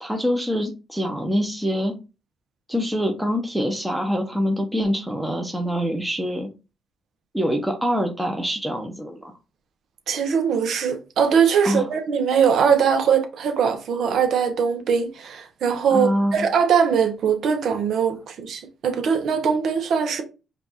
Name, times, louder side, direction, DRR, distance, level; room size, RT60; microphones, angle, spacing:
voice 1, 0.0-1.9 2.7-6.5 7.3-9.3 11.6-11.9 15.9-16.5, equal, 5° right, 0.8 m, -25 dB
voice 2, 10.1-20.2, right 7 dB, 70° right, 1.0 m, -21 dB
5.0 x 2.6 x 2.9 m
cardioid pair, 90°, 0 cm